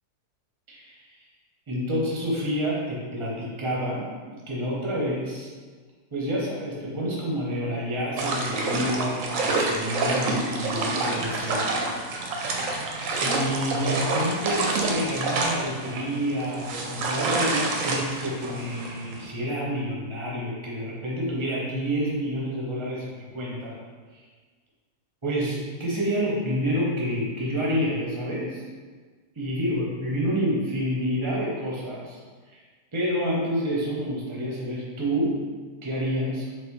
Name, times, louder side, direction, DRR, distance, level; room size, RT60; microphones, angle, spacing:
voice 1, 0.7-1.1 1.7-4.1 4.5-5.5 6.1-11.6 13.1-23.0 23.3-23.7 24.1-24.2 25.2-28.6 29.3-32.2 32.5-32.6 32.9-35.4 35.8-36.4, equal, 25° right, -5 dB, 0.7 m, -28 dB
sound 1, 8.2-19.3, right 3 dB, 70° right, 0.9 m, -28 dB
4.0 x 3.1 x 3.0 m, 1.5 s
omnidirectional pair, 1.7 m